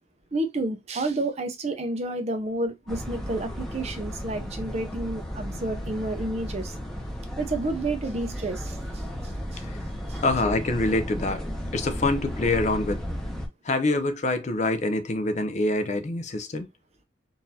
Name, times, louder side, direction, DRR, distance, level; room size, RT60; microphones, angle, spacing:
voice 1, 0.3-6.7 7.4-9.0 9.5-9.6 10.1-10.2, right 2 dB, 30° right, 0.5 m, -30 dB
sound 1, 2.9-13.5, equal, 5° left, 0.7 m, -34 dB
voice 2, 10.2-13.0 13.6-16.7, left 2 dB, 35° left, 0.4 m, -26 dB
3.9 x 2.5 x 2.7 m
head